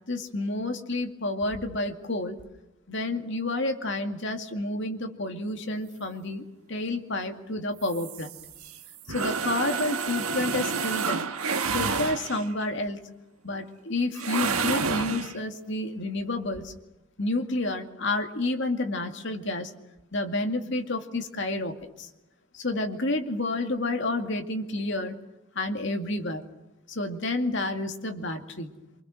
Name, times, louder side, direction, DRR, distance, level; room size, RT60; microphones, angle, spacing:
voice 1, 0.1-2.4 2.9-8.3 9.1-11.3 11.7-13.0 13.4-16.7 17.2-19.7 20.1-22.1 22.5-25.1 25.6-26.4 26.9-28.7, left 2 dB, 55° left, 5 dB, 2.3 m, -30 dB
sound 1, 7.8-12.6 14.2-15.4, right 5 dB, 85° right, 1.5 m, -29 dB
27.5 x 25.0 x 6.4 m, 0.92 s
head